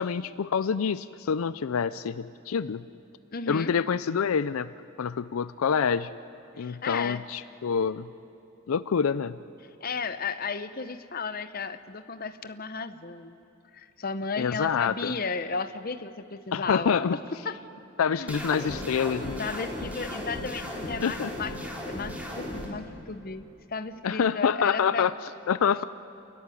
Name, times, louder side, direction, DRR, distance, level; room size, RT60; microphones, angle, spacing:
voice 1, 0.0-2.8 3.5-4.7 5.0-6.1 6.6-8.1 8.7-9.4 14.4-15.1 16.5-17.1 18.0-19.4 21.0-21.3 24.0-25.1 25.5-25.8, left 6 dB, 85° left, 15 dB, 0.4 m, -26 dB
voice 2, 3.3-3.7 6.6-7.2 9.8-13.4 13.7-17.2 17.4-17.6 18.2-18.3 19.4-25.1, left 4 dB, 45° left, 11 dB, 0.8 m, -34 dB
sound 1, 18.3-22.7, left 1 dB, 5° right, 3.1 m, -36 dB
30.0 x 14.0 x 9.9 m, 2.8 s
head